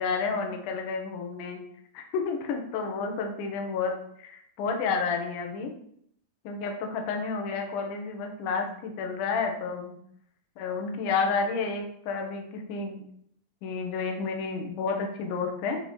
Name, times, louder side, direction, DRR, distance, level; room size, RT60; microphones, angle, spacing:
voice 1, 0.0-1.6 1.9-5.7 6.4-10.0 10.6-13.1 13.6-15.8, left 5 dB, 70° left, 3 dB, 2.0 m, -30 dB
8.8 x 3.1 x 5.2 m, 0.68 s
omnidirectional pair, 4.9 m